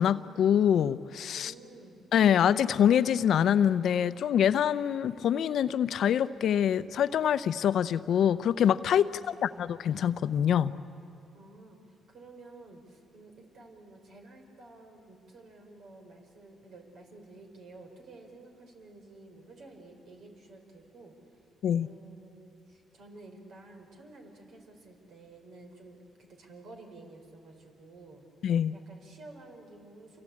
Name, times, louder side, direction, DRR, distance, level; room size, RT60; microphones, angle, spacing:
voice 1, 0.0-1.5 2.1-10.7 21.6-21.9 28.4-28.7, left 9 dB, 70° left, 13 dB, 0.7 m, -25 dB
voice 2, 1.3-2.0 9.0-9.6 11.3-21.1 21.8-28.2 28.7-30.2, right 2 dB, 70° right, 3 dB, 5.0 m, -51 dB
28.0 x 24.5 x 8.6 m, 2.6 s
cardioid pair, 90°, 0 cm